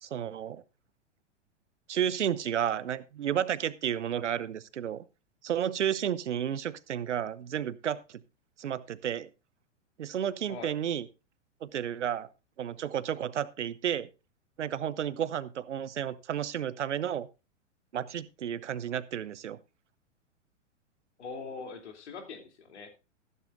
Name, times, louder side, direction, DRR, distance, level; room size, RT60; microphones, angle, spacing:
voice 1, 0.0-0.6 1.9-5.0 5.4-8.2 8.6-9.3 10.0-11.1 11.6-12.3 12.6-14.1 14.6-17.3 17.9-19.6, right 9 dB, 70° right, 18 dB, 0.9 m, -32 dB
voice 2, 21.2-22.9, left 4 dB, 65° left, 6 dB, 3.0 m, -42 dB
14.0 x 12.0 x 2.5 m, 0.28 s
figure-of-eight pair, 105°, 37 cm